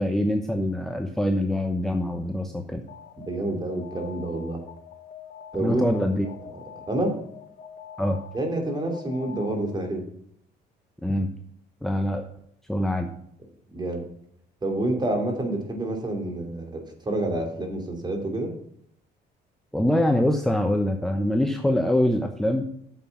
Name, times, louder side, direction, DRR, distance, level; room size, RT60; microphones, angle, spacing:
voice 1, 0.0-2.8 5.6-6.3 8.0-8.2 11.0-11.3 11.8-12.3 12.7-13.1 19.7-22.7, left 1 dB, ahead, 4 dB, 0.9 m, -24 dB
Alarm, 2.9-10.0, left 8 dB, 55° left, 1.1 m, -45 dB
voice 2, 3.3-4.6 5.5-5.8 6.3-6.4 6.8-7.1 8.3-10.0 13.7-14.1 14.6-18.5, right 1 dB, 25° right, 3 dB, 2.9 m, -28 dB
9.3 x 6.8 x 5.8 m, 0.69 s
cardioid pair, 110°, 17 cm